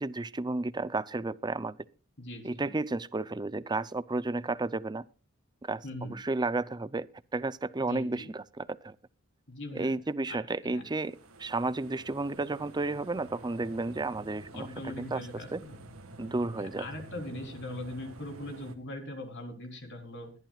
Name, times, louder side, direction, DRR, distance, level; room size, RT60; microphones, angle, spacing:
voice 1, 0.0-1.8 2.4-5.0 5.7-7.1 7.3-8.9 9.7-14.7 15.0-15.2 15.5-15.6 16.2-16.9, right 2 dB, 20° right, 0.6 m, -32 dB
voice 2, 2.2-2.7 5.8-6.1 7.9-8.3 9.5-9.9 10.3-10.8 14.5-15.8 16.6-20.3, left 1 dB, 60° left, 3.7 m, -41 dB
sound 1, 10.7-18.8, right 1 dB, 75° right, 1.9 m, -49 dB
21.5 x 12.0 x 2.4 m
head